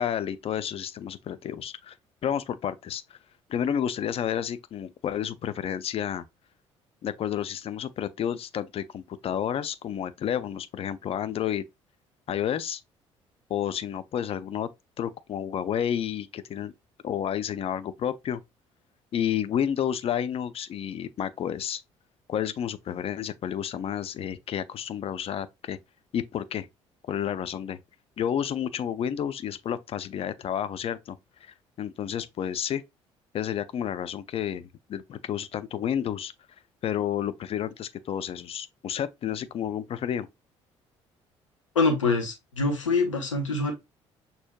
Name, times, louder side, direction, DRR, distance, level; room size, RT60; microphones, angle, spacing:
voice 1, 0.0-1.9 2.2-3.0 3.5-6.2 7.0-11.6 12.3-12.8 13.5-14.7 15.0-16.7 17.0-18.4 19.1-21.8 22.3-25.8 26.1-26.7 27.0-27.8 28.2-32.8 33.3-36.3 36.8-40.3, left 9 dB, 40° left, 0.4 m, -30 dB
voice 2, 41.7-43.7, left 3 dB, 85° left, 1.0 m, -25 dB
6.2 x 2.7 x 2.2 m
figure-of-eight pair, 50°, 16 cm